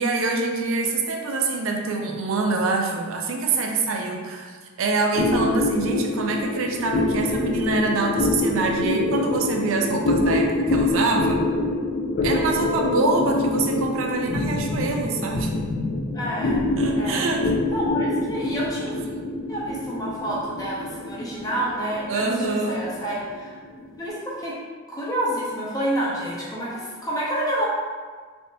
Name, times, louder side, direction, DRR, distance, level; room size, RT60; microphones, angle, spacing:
voice 1, 0.0-11.4 12.2-15.5 16.8-17.5 22.1-22.8, right 3 dB, 70° right, 2 dB, 0.4 m, -25 dB
sound 1, 5.1-23.9, left 2 dB, 50° left, 0.4 m, -25 dB
voice 2, 16.1-16.6 17.0-17.3 17.7-18.9 19.5-23.6 24.0-24.5 24.9-27.7, right 1 dB, 20° left, -7 dB, 0.7 m, -28 dB
3.3 x 2.7 x 2.6 m, 1.5 s
head